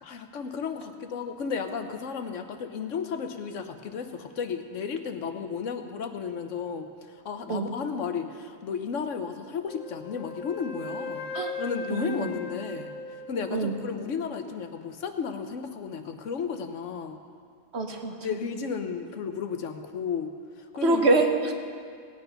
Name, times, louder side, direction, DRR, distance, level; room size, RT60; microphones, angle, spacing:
voice 1, 0.0-6.9 7.2-11.3 11.6-12.9 13.3-17.2 18.2-20.3 20.6-21.1, left 6 dB, 80° left, 7 dB, 1.2 m, -33 dB
Wind instrument woodwind instrument, 9.6-13.9, left 3 dB, 45° left, 1.2 m, -38 dB
voice 2, 11.9-12.3 13.5-13.8 17.7-18.2 20.8-21.5, right 2 dB, 60° right, 4 dB, 1.4 m, -25 dB
17.5 x 9.1 x 5.7 m, 2.2 s
omnidirectional pair, 1.3 m